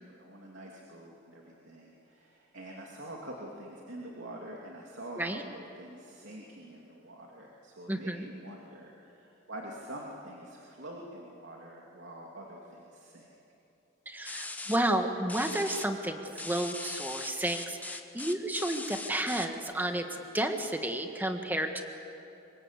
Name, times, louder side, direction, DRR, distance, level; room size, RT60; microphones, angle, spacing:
voice 1, 0.0-13.3, right 1 dB, 75° right, -2 dB, 2.9 m, -46 dB
voice 2, 7.9-8.3 14.0-21.8, right 1 dB, 10° right, 5 dB, 1.6 m, -31 dB
sound 1, 14.2-14.8 15.3-15.8 16.4-19.5, left 3 dB, 10° left, 1.1 m, -39 dB
26.5 x 24.5 x 8.4 m, 2.9 s
head